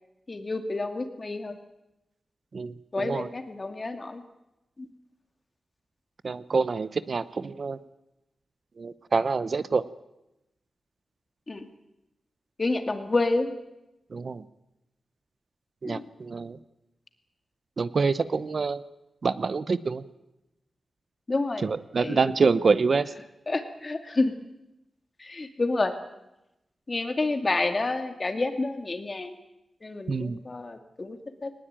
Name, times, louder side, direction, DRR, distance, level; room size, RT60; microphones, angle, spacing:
voice 1, 0.3-1.6 2.9-4.2 4.8-4.9 11.5-11.7 12.6-13.5 15.8-16.1 21.3-21.7 22.0-22.3 23.5-24.3 25.2-25.9 26.9-29.4 29.8-31.5, left 2 dB, 30° left, 8 dB, 2.3 m, -29 dB
voice 2, 2.5-3.3 6.2-7.8 8.8-9.8 14.1-14.4 15.8-16.6 17.8-18.8 19.2-20.0 21.6-23.1 30.1-30.4, right 4 dB, 50° right, 15 dB, 0.9 m, -26 dB
20.5 x 20.5 x 9.0 m, 0.93 s
wide cardioid pair, 125°, 0 cm